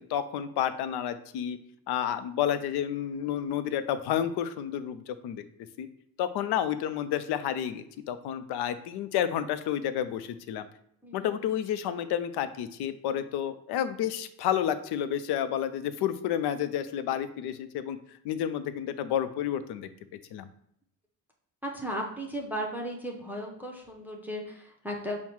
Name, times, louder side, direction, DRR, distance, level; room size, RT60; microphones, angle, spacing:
voice 1, 0.0-1.6 1.9-5.5 5.8-5.9 6.2-10.7 11.1-18.0 18.2-19.9 20.3-20.5, left 10 dB, 80° left, 12 dB, 0.5 m, -30 dB
voice 2, 11.0-11.4 21.6-25.2, equal, 5° right, 0 dB, 0.7 m, -36 dB
5.5 x 2.1 x 4.5 m, 0.72 s
cardioid pair, 110°, 38 cm